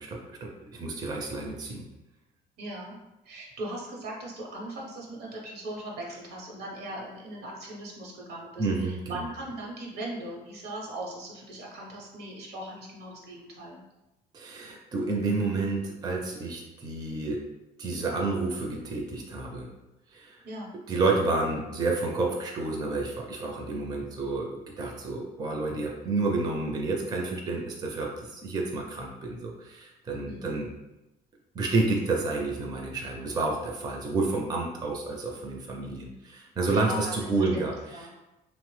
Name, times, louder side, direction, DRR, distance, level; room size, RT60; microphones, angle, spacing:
voice 1, 0.0-1.8 8.6-9.2 14.3-17.4 17.8-19.7 20.1-20.4 20.9-30.7 31.5-37.7 38.0-38.1, right 3 dB, 25° right, 0 dB, 0.4 m, -30 dB
voice 2, 2.6-3.0 3.2-13.8 20.4-20.7 30.2-30.5 36.9-37.6 37.9-38.1, right 1 dB, 75° right, -2 dB, 0.9 m, -39 dB
2.9 x 2.0 x 3.1 m, 0.99 s
cardioid pair, 110°, 17 cm